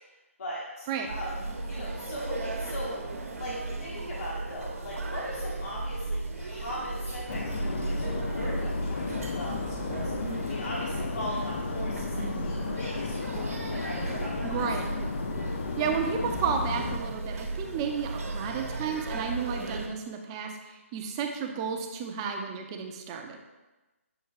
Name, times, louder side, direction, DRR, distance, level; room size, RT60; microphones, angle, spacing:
voice 1, 0.4-1.3 1.7-2.9 3.3-14.7, left 1 dB, 65° left, -6 dB, 1.3 m, -39 dB
sound 1, 1.0-19.9, right 2 dB, 80° right, 1.1 m, -35 dB
sound 2, 7.3-17.0, left 6 dB, 45° left, 0.4 m, -35 dB
voice 2, 14.4-14.8 15.8-20.5 20.9-23.4, right 6 dB, 20° right, 3 dB, 0.6 m, -32 dB
7.3 x 2.8 x 4.7 m, 1.1 s
hypercardioid pair, 155°, 8 cm